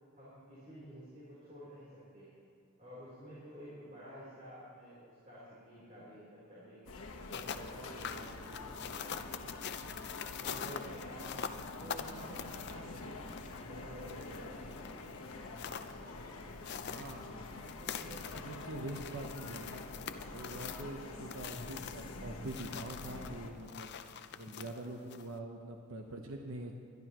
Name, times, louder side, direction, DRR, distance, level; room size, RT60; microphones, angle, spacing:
voice 1, 0.0-2.3 2.8-6.9 7.3-9.7 10.4-11.5 11.8-13.4 13.7-15.1, equal, 35° right, -10 dB, 3.8 m, -51 dB
sound 1, 6.9-23.5, left 2 dB, 80° left, 1.3 m, -46 dB
sound 2, 7.1-25.4, left 7 dB, 50° left, 0.5 m, -46 dB
voice 2, 16.8-19.8 20.3-23.9 24.3-26.7, right 1 dB, 65° right, 2 dB, 0.9 m, -45 dB
21.0 x 12.0 x 3.1 m, 2.3 s
head